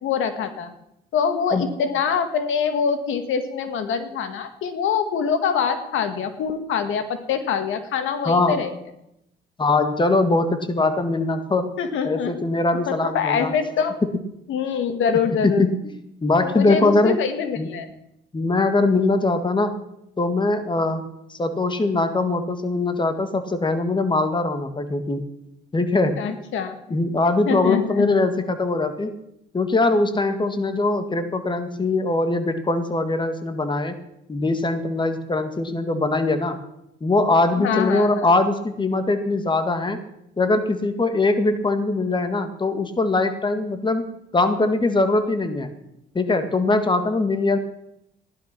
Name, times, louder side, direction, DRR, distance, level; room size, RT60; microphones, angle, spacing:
voice 1, 0.0-0.7 1.1-8.7 11.8-12.3 12.9-14.0 14.5-15.6 16.4-17.9 26.2-26.8 27.5-28.1 37.6-38.3, left 6 dB, 80° left, 9 dB, 1.7 m, -24 dB
voice 2, 8.3-8.6 9.6-11.7 12.0-13.5 14.0-14.1 15.4-15.9 16.2-17.2 17.6-17.7 18.3-19.8 20.2-21.0 21.3-25.3 25.7-26.4 26.9-29.1 29.5-34.0 34.3-36.6 37.0-40.0 40.4-45.7 46.2-47.6, left 2 dB, 25° left, 8 dB, 1.8 m, -21 dB
15.5 x 11.5 x 6.0 m, 0.81 s
cardioid pair, 90°, 20 cm